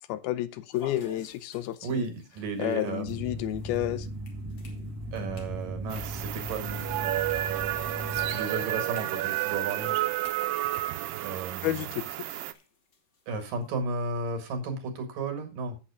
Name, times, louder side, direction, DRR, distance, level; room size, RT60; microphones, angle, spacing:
voice 1, 0.1-2.1 2.6-4.1 11.6-12.2, left 13 dB, 80° left, 13 dB, 2.5 m, -30 dB
sound 1, 0.7-14.0, left 2 dB, 45° left, 2.6 m, -56 dB
voice 2, 1.8-3.2 5.1-6.9 8.1-10.0 11.2-11.9 13.3-15.8, right 4 dB, 60° right, 5 dB, 3.3 m, -34 dB
sound 2, 3.1-8.4, equal, 30° right, 2.1 m, -37 dB
sound 3, 5.9-12.5, right 15 dB, 85° right, 2.7 m, -31 dB
8.4 x 8.2 x 4.9 m, 0.30 s
omnidirectional pair, 4.5 m